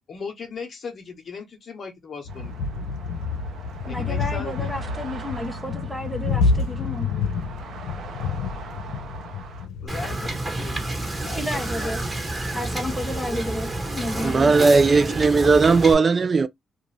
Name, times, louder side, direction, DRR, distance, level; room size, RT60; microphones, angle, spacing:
voice 1, 0.0-2.5 3.9-4.7 9.8-12.0 14.1-15.2 15.8-16.0, left 5 dB, 45° left, 1.0 m, -38 dB
sound 1, 2.2-13.7, left 4 dB, 90° left, 0.6 m, -29 dB
sound 2, 2.3-9.7, right 6 dB, 60° right, 0.8 m, -42 dB
voice 2, 3.9-7.1 11.3-12.0 12.5-14.7, left 1 dB, ahead, 0.7 m, -31 dB
Wind / Boat Water vehicle, 9.9-15.9, right 1 dB, 20° right, 1.4 m, -29 dB
voice 3, 14.2-16.5, right 4 dB, 35° right, 0.4 m, -17 dB
2.5 x 2.4 x 3.1 m
cardioid pair, 90°, 0 cm